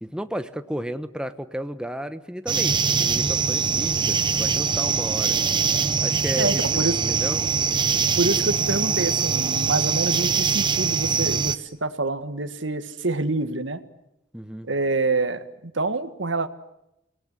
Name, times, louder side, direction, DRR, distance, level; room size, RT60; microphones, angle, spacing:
voice 1, 0.0-5.4 6.0-6.8 7.1-7.4 14.3-14.7, equal, 5° right, 10 dB, 1.1 m, -33 dB
sound 1, 2.5-11.6, right 6 dB, 25° right, 0.9 m, -23 dB
voice 2, 6.4-7.0 8.2-13.8 14.7-16.5, right 2 dB, 70° right, 10 dB, 1.9 m, -26 dB
29.5 x 19.0 x 9.7 m, 0.85 s
head